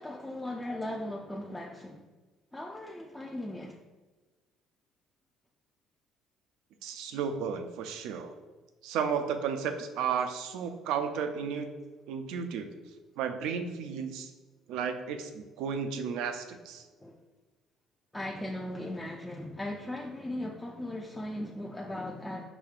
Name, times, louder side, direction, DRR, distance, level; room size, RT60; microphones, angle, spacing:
voice 1, 0.0-2.1 2.5-3.8 17.0-17.1 18.1-22.4, left 1 dB, 10° left, -1 dB, 0.4 m, -38 dB
voice 2, 6.8-8.3 8.8-11.7 12.1-12.7 13.2-14.3 14.7-16.8, right 6 dB, 75° right, 7 dB, 0.4 m, -33 dB
4.9 x 2.7 x 2.4 m, 1.3 s
supercardioid pair, 70°, 0 cm